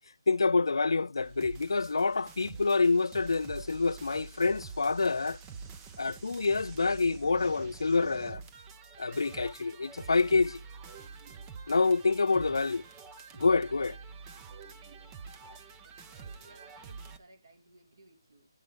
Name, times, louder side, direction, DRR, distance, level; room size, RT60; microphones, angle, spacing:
voice 1, 0.3-5.4 6.0-8.4 9.0-10.6 11.7-12.8 13.3-14.0, left 4 dB, 85° left, 0.4 m, -27 dB
sound 1, 1.2-17.2, right 5 dB, 15° right, 0.5 m, -47 dB
voice 2, 15.8-18.5, right 2 dB, 55° right, 2.6 m, -60 dB
9.3 x 5.4 x 5.0 m
hypercardioid pair, 170°, 2 cm